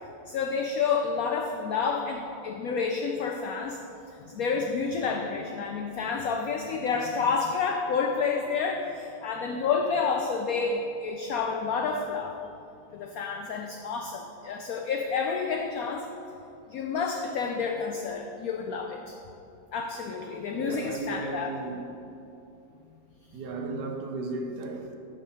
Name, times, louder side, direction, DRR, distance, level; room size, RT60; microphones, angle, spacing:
voice 1, 0.3-3.8 4.3-12.4 12.9-16.1 16.7-19.2 19.7-21.5, left 5 dB, 80° left, 3 dB, 0.8 m, -29 dB
voice 2, 20.5-21.8 23.3-25.0, right 3 dB, 70° right, 4 dB, 1.1 m, -35 dB
6.8 x 5.7 x 5.5 m, 2.8 s
omnidirectional pair, 2.1 m